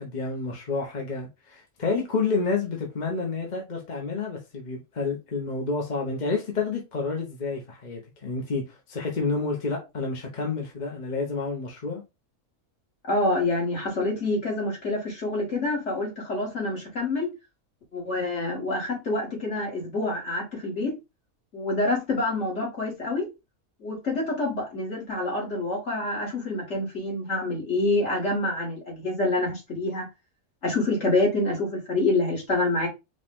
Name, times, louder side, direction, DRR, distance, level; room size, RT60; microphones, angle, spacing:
voice 1, 0.0-12.0, left 4 dB, 35° left, 1.0 m, -29 dB
voice 2, 13.1-17.3 17.9-21.0 21.5-23.3 23.8-30.0 30.6-32.9, left 2 dB, 50° left, 2.4 m, -27 dB
5.1 x 2.5 x 3.5 m
omnidirectional pair, 1.5 m